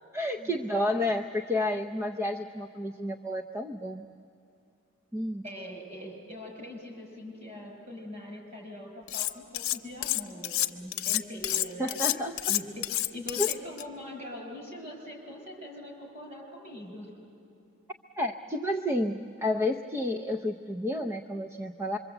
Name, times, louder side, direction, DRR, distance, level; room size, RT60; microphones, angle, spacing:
voice 1, 0.1-4.1 5.1-5.4 11.8-12.4 13.4-13.5 18.2-22.0, left 1 dB, 15° right, 3 dB, 0.5 m, -30 dB
voice 2, 5.4-12.0 12.5-17.1, left 1 dB, 35° right, 2 dB, 5.6 m, -42 dB
Cutlery silverware, 9.1-9.8 10.0-13.8, left 14 dB, 90° left, 0.8 m, -29 dB
26.0 x 23.5 x 8.0 m, 2.7 s
head